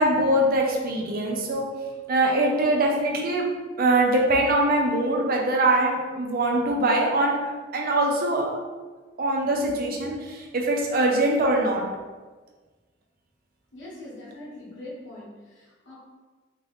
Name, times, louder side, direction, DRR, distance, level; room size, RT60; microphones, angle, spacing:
voice 1, 0.0-1.7 2.1-3.5 3.8-8.5 9.2-11.8, right 1 dB, 50° right, 0 dB, 0.6 m, -23 dB
voice 2, 13.7-15.9, left 1 dB, 70° left, -8 dB, 1.5 m, -42 dB
3.6 x 2.5 x 3.4 m, 1.3 s
head